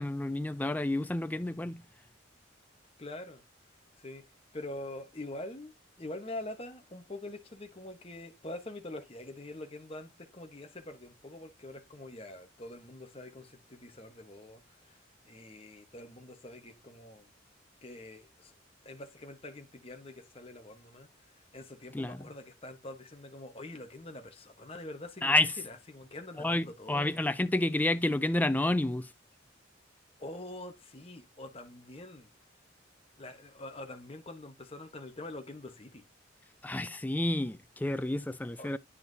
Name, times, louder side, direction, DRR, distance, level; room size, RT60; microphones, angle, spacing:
voice 1, 0.0-1.8 21.9-22.3 25.2-25.5 26.4-29.1 36.6-38.8, left 2 dB, 10° left, 0.3 m, -30 dB
voice 2, 3.0-3.4 4.0-4.2 4.5-5.7 6.0-15.0 15.2-17.3 17.8-18.5 18.8-21.1 21.5-25.3 25.6-27.2 30.2-32.3 33.2-36.0 38.6-38.8, left 1 dB, 30° left, 1.1 m, -45 dB
9.3 x 5.7 x 2.7 m
head